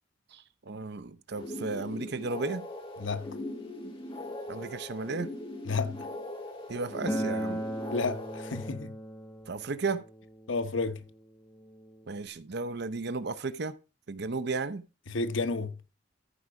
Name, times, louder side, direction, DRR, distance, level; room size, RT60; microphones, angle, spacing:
voice 1, 0.3-2.7 4.5-5.3 6.7-7.6 9.5-10.0 12.1-13.8 14.1-14.8, right 3 dB, 60° right, 0.7 m, -34 dB
sound 1, 1.3-8.7, left 1 dB, 30° left, 2.4 m, -40 dB
voice 2, 3.0-3.3 5.7-6.1 7.9-9.0 10.5-11.0 15.1-15.8, left 3 dB, 90° left, 1.0 m, -31 dB
Acoustic guitar, 7.1-12.3, right 1 dB, 15° left, 1.5 m, -38 dB
14.0 x 4.7 x 5.1 m
head